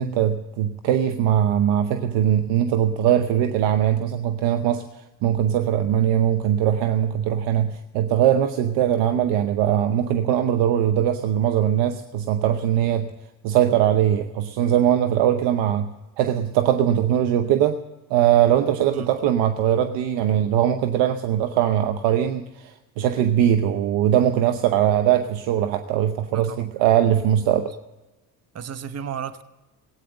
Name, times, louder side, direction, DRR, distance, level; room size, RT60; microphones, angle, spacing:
voice 1, 0.0-13.1 13.4-17.8 18.1-27.7, right 10 dB, 85° right, 0.9 m, -21 dB
voice 2, 26.3-26.7 28.5-29.4, right 7 dB, 35° right, 1.0 m, -33 dB
17.0 x 9.2 x 7.8 m
supercardioid pair, 80°, 42 cm